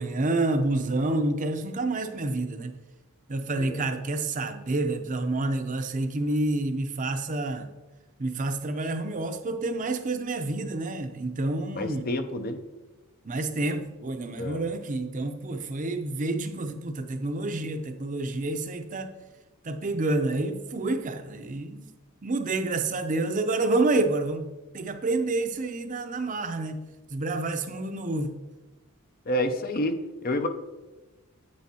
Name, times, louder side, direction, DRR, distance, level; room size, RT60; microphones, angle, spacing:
voice 1, 0.0-2.7 3.3-7.7 8.2-12.1 13.2-19.1 19.6-21.8 22.2-24.4 24.7-26.8 27.1-28.3, right 2 dB, 35° right, 0.6 m, -28 dB
voice 2, 11.7-12.6 14.4-14.6 29.3-30.5, left 1 dB, 40° left, 0.5 m, -29 dB
9.5 x 8.1 x 2.8 m
head